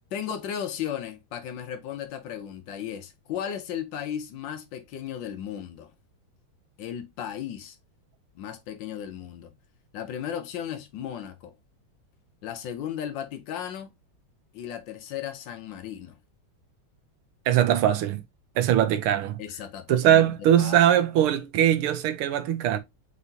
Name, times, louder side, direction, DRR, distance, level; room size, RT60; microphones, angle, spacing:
voice 1, 0.1-5.9 6.8-7.8 8.4-9.5 9.9-11.6 12.4-14.0 14.5-16.2 19.4-20.8, left 9 dB, 70° left, 1.2 m, -35 dB
voice 2, 17.5-18.2 18.6-19.4 19.9-22.8, right 11 dB, 85° right, 1.6 m, -21 dB
4.8 x 4.0 x 2.6 m
omnidirectional pair, 2.3 m